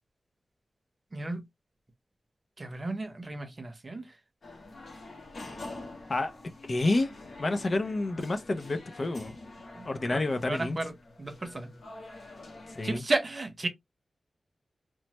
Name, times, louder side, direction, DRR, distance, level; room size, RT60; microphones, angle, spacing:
voice 1, 1.1-1.5 2.6-4.2 9.7-11.7 12.8-13.7, right 2 dB, 35° right, 0.7 m, -34 dB
sound 1, 4.4-13.0, left 2 dB, 65° left, 1.0 m, -46 dB
voice 2, 6.7-7.1 7.4-9.4 9.8-10.8 12.7-13.0, left 2 dB, 45° left, 0.5 m, -29 dB
3.1 x 2.1 x 2.9 m
wide cardioid pair, 85°, 0 cm